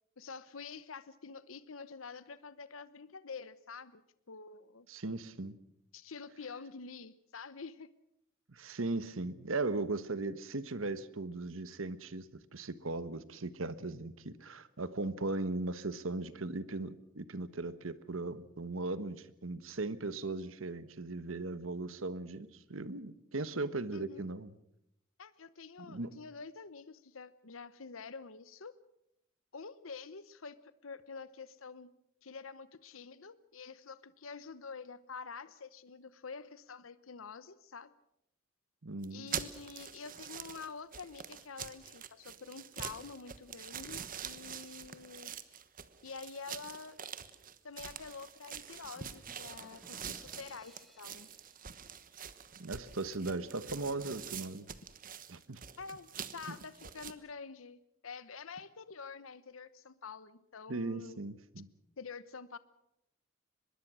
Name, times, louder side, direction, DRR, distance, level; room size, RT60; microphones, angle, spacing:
voice 1, 0.2-4.0 4.3-4.9 5.9-7.9 23.9-24.2 25.2-28.7 29.5-31.9 32.2-37.9 39.1-45.3 46.0-47.0 47.6-51.3 55.8-61.2 62.0-62.6, left 5 dB, 85° left, 15 dB, 0.9 m, -47 dB
voice 2, 4.9-5.6 8.5-24.5 25.9-26.1 38.8-39.3 52.6-54.7 55.3-55.6 56.5-56.6 60.7-61.7, right 2 dB, 80° right, 14 dB, 1.3 m, -38 dB
Footsteps Mens Dress Shoes Forest Floor, 39.0-57.1, right 8 dB, 45° right, 1.2 m, -45 dB
sound 1, 49.0-52.7, equal, ahead, 2.0 m, -61 dB
24.0 x 21.0 x 6.2 m, 0.78 s
head